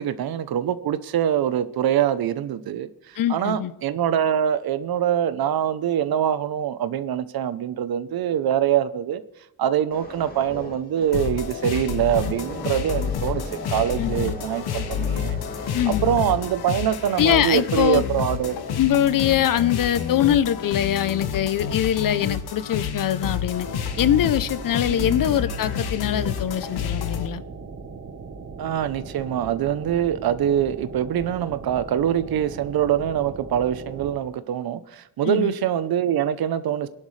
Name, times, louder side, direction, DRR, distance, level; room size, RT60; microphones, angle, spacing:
voice 1, 0.0-9.2 9.6-13.4 13.7-15.4 15.9-18.6 24.8-25.2 28.6-36.9, right 10 dB, 75° right, 0.8 m, -24 dB
voice 2, 3.2-3.7 14.0-14.3 15.7-16.1 17.2-18.0 18.8-23.7 24.0-27.4 35.2-35.5, left 10 dB, 60° left, 0.7 m, -23 dB
sound 1, 9.9-20.8 21.4-21.6, left 2 dB, 25° left, 2.4 m, -40 dB
sound 2, 11.1-27.3, left 8 dB, 85° left, 1.2 m, -29 dB
sound 3, 23.6-34.2, right 4 dB, 40° right, 1.3 m, -39 dB
24.0 x 11.0 x 3.3 m
cardioid pair, 125°, 37 cm